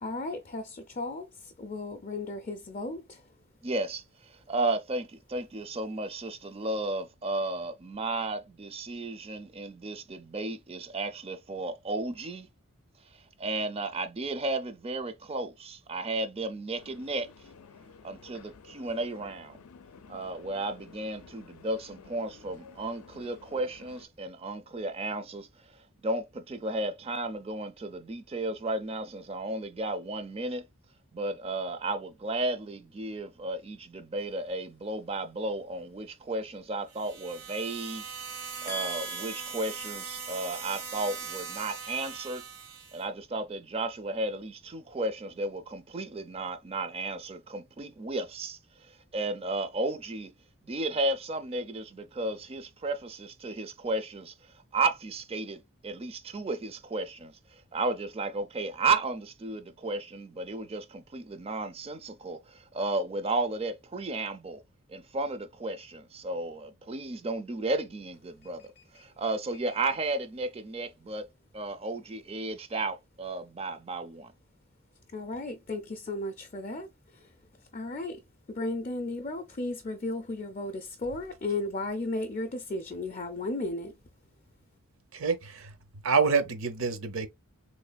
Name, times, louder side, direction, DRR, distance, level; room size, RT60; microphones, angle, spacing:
voice 1, 0.0-3.3 38.7-39.5 68.4-69.1 75.1-77.3 77.7-78.2 78.5-83.9, left 2 dB, 35° left, 0.4 m, -35 dB
voice 2, 3.6-12.5 13.1-17.3 18.0-19.6 20.1-25.5 25.7-30.7 31.1-38.1 38.6-42.4 42.9-50.3 50.6-64.6 64.9-71.3 71.5-74.3, right 2 dB, 25° right, 0.4 m, -33 dB
sound 1, 16.7-24.1, left 5 dB, 90° left, 0.5 m, -53 dB
sound 2, 36.9-43.0, right 5 dB, 85° right, 1.5 m, -40 dB
voice 3, 85.1-85.8 86.0-87.3, right 5 dB, 65° right, 0.7 m, -27 dB
3.5 x 3.1 x 2.3 m
head